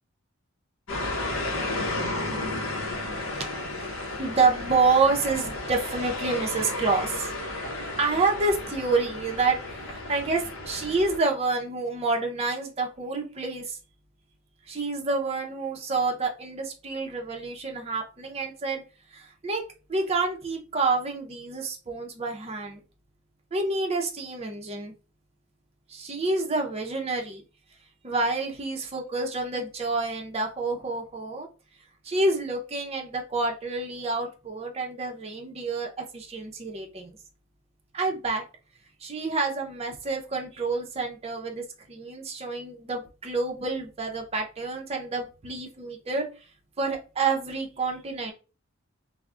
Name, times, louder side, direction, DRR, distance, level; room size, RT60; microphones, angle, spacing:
sound 1, 0.9-11.2, left 2 dB, 70° left, 0.7 m, -33 dB
voice 1, 4.2-7.3 8.0-13.8 14.7-18.8 19.1-19.6 19.9-22.8 23.5-24.9 25.9-27.4 28.0-31.5 32.0-37.2 37.9-38.4 39.0-41.6 41.9-46.3 46.8-48.3, right 3 dB, 30° right, 2 dB, 0.5 m, -28 dB
2.2 x 2.0 x 3.6 m, 0.32 s
head